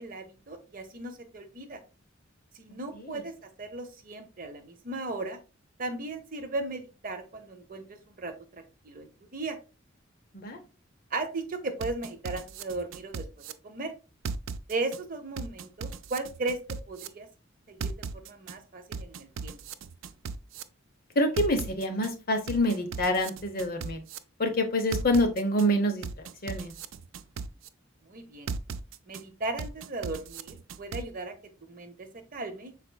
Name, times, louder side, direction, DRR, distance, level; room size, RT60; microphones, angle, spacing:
voice 1, 0.0-1.8 2.5-3.3 3.6-5.4 5.8-9.6 11.1-13.3 13.6-13.9 14.7-16.6 16.9-17.3 17.7-19.6 28.0-28.5 29.1-31.3 31.6-32.7, right 2 dB, 45° right, 6 dB, 0.8 m, -36 dB
sound 1, 11.8-13.5 14.3-15.0 15.4-17.1 17.8-18.5 18.9-20.6 21.4-22.1 22.5-24.2 24.9-25.7 26.0-27.7 28.5-29.2 29.6-31.0, right 5 dB, 75° right, 0.4 m, -36 dB
voice 2, 21.2-24.0 24.4-26.0 26.4-26.7, left 1 dB, 50° left, 5 dB, 0.8 m, -26 dB
5.7 x 4.1 x 2.3 m, 0.31 s
head